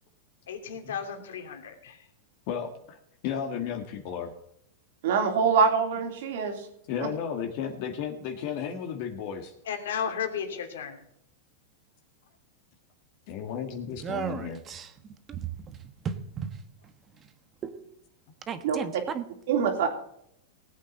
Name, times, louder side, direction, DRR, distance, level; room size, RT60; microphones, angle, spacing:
voice 1, 0.5-2.1 9.7-11.0, left 7 dB, 85° left, 5 dB, 2.8 m, -34 dB
voice 2, 2.5-3.0 3.2-4.3 6.9-9.5 13.3-14.6, left 7 dB, 50° left, 4 dB, 1.8 m, -33 dB
voice 3, 5.0-6.6 7.0-7.1 18.6-18.8 19.5-19.9, right 6 dB, 70° right, 5 dB, 3.2 m, -24 dB
voice 4, 14.0-16.6 17.6-17.9 18.5-19.2, right 7 dB, 25° right, 10 dB, 1.3 m, -35 dB
19.0 x 8.4 x 4.2 m, 0.74 s
supercardioid pair, 135°, 0 cm